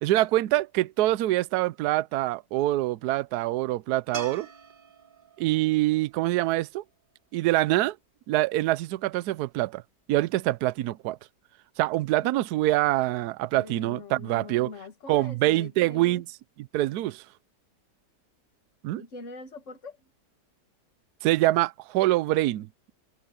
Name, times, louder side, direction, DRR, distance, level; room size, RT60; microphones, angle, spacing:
voice 1, 0.0-4.5 5.4-6.8 7.3-8.0 8.3-9.8 10.1-11.2 11.8-14.7 15.1-16.2 16.6-17.2 18.8-19.0 21.2-22.7, right 16 dB, 75° right, 1.0 m, -25 dB
sound 1, 4.1-7.4 10.6-10.7, right 3 dB, 30° right, 1.7 m, -45 dB
voice 2, 13.6-16.2 19.0-20.0, left 3 dB, 45° left, 2.0 m, -43 dB
omnidirectional pair, 1.9 m